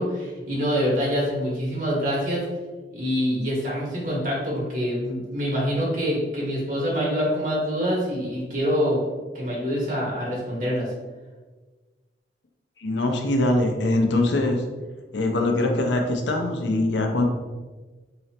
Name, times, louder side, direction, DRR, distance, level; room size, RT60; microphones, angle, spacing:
voice 1, 0.0-2.5 2.9-9.0 9.3-10.9, equal, 50° right, -4 dB, 1.3 m, -25 dB
voice 2, 12.8-14.6 15.1-17.2, left 2 dB, 85° left, 3 dB, 0.6 m, -22 dB
3.9 x 2.0 x 4.2 m, 1.3 s
head